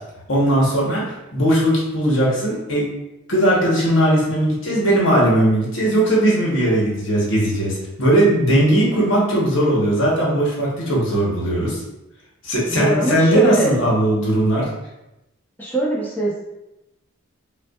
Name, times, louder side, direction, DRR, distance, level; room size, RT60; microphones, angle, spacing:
voice 1, 0.3-2.9 3.3-11.8 12.4-14.7, right 1 dB, 65° left, -4 dB, 1.1 m, -18 dB
voice 2, 12.7-13.7 15.6-16.4, right 2 dB, 10° left, -5 dB, 0.8 m, -22 dB
5.5 x 2.4 x 2.4 m, 0.93 s
head